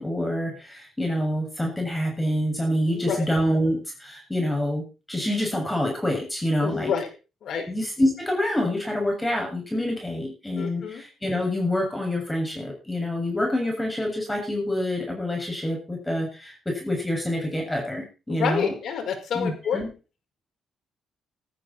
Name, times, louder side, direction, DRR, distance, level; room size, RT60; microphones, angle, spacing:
voice 1, 0.0-6.9 7.7-18.7 19.3-19.9, left 1 dB, 10° left, 1 dB, 7.0 m, -27 dB
voice 2, 2.9-3.3 6.6-7.1 7.4-7.7 10.6-11.0 18.3-19.8, left 7 dB, 65° left, 4 dB, 5.6 m, -28 dB
15.0 x 13.0 x 4.4 m, 0.32 s
cardioid pair, 90°, 0 cm